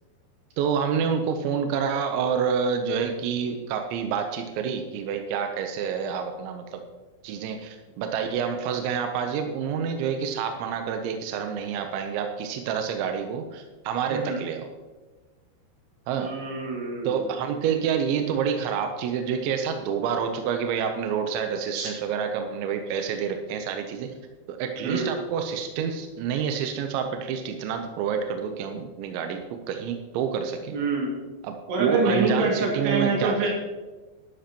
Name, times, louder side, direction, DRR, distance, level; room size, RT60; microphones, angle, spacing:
voice 1, 0.6-6.8 7.2-14.7 16.1-16.3 17.0-24.1 24.5-30.8 31.4-33.5, right 7 dB, 85° right, 5 dB, 3.1 m, -28 dB
voice 2, 14.1-14.4 16.1-17.2 21.7-21.9 24.8-25.1 30.7-31.2 31.7-33.5, right 3 dB, 65° right, -2 dB, 4.2 m, -26 dB
13.0 x 12.0 x 3.0 m, 1.2 s
omnidirectional pair, 5.3 m